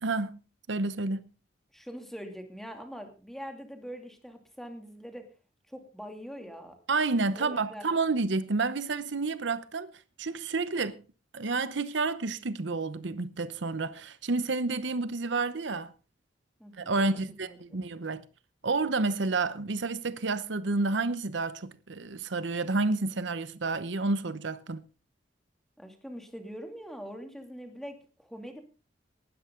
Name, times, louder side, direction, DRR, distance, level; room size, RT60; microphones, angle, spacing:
voice 1, 0.0-0.4 0.7-1.2 6.9-9.9 10.2-11.0 11.3-15.9 16.8-18.2 18.6-24.8, right 3 dB, 70° right, 0.8 m, -30 dB
voice 2, 1.7-5.3 5.7-6.8 7.3-7.9 16.6-17.8 25.8-28.6, equal, ahead, 2.6 m, -43 dB
19.0 x 12.5 x 3.8 m
head